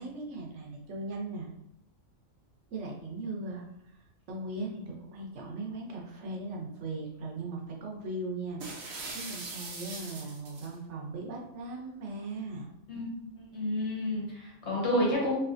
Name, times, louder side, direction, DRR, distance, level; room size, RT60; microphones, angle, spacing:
voice 1, 0.0-1.5 2.7-3.6 3.9-8.6 9.1-12.7, right 2 dB, 65° right, -1 dB, 1.0 m, -38 dB
sound 1, 8.6-10.7, right 3 dB, 85° right, 1.2 m, -41 dB
voice 2, 12.9-15.4, left 1 dB, 55° left, -3 dB, 1.3 m, -30 dB
3.2 x 2.9 x 2.5 m, 0.81 s
omnidirectional pair, 1.4 m